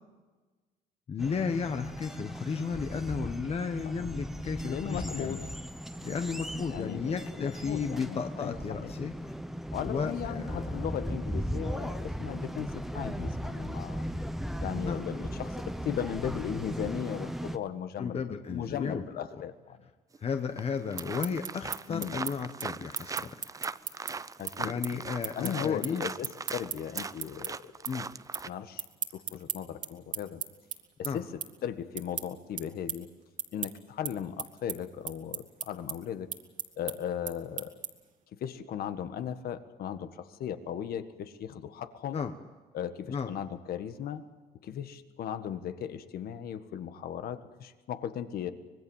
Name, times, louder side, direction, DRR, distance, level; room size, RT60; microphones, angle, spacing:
voice 1, 1.1-5.4 6.0-9.1 9.8-10.7 14.9-15.0 18.0-19.0 20.2-23.4 24.6-26.0 27.9-28.1 31.0-31.2 42.1-42.3 43.1-43.3, left 6 dB, 35° left, 7 dB, 1.3 m, -34 dB
sound 1, 1.2-17.6, equal, ahead, 1.0 m, -37 dB
voice 2, 4.6-5.5 6.7-8.9 9.7-14.1 14.6-19.8 21.9-22.2 24.4-25.0 25.3-27.7 28.4-28.8 29.1-30.4 31.0-33.1 33.5-36.3 36.8-37.8 38.4-42.2 42.7-44.2 44.6-48.5, left 9 dB, 65° left, 10 dB, 1.7 m, -37 dB
sound 2, 20.1-20.2 20.6-28.5, right 4 dB, 20° right, 0.6 m, -40 dB
sound 3, 21.0-27.5 27.8-28.5 28.7-38.1, right 7 dB, 50° right, 2.3 m, -37 dB
25.0 x 20.5 x 7.4 m, 1.3 s
cardioid pair, 110°, 17 cm